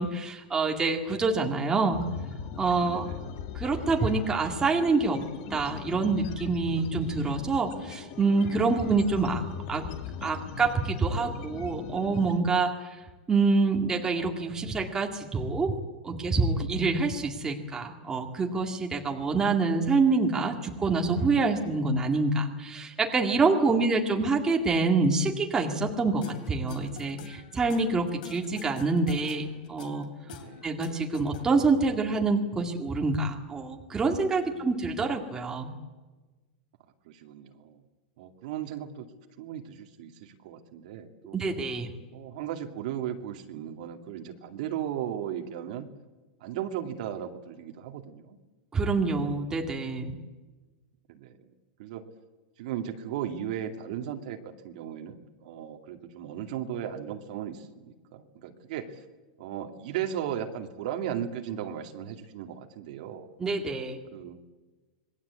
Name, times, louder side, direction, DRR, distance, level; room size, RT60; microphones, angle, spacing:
voice 1, 0.0-2.0 2.6-3.1 3.5-5.2 5.5-9.4 9.7-9.8 10.2-13.0 13.3-15.8 16.0-30.1 30.6-35.7 41.3-41.9 48.7-50.2 63.4-64.0, right 3 dB, 10° right, 2 dB, 2.0 m, -26 dB
sound 1, 1.9-12.4, left 7 dB, 40° left, 2.3 m, -40 dB
voice 2, 2.8-3.2 23.6-23.9 30.4-30.7 34.4-34.7 37.0-37.8 38.2-39.1 39.4-41.4 42.1-45.9 46.4-48.4 51.1-51.5 51.8-52.0 52.6-59.0 59.4-63.3 64.1-64.4, right 10 dB, 55° right, 5 dB, 2.4 m, -36 dB
sound 2, 26.2-31.8, left 6 dB, 60° left, 3.3 m, -45 dB
26.5 x 21.5 x 8.3 m, 1.2 s
supercardioid pair, 165°, 5 cm